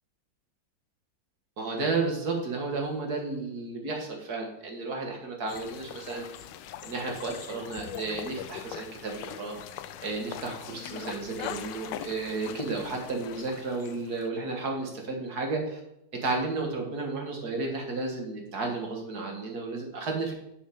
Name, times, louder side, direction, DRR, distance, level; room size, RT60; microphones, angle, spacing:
voice 1, 1.6-6.4 6.8-9.6 10.0-15.8 16.2-20.3, right 3 dB, 60° right, 1 dB, 2.1 m, -32 dB
sound 1, 5.5-14.3, left 11 dB, 80° left, 1.2 m, -41 dB
7.5 x 7.0 x 5.3 m, 0.81 s
omnidirectional pair, 2.0 m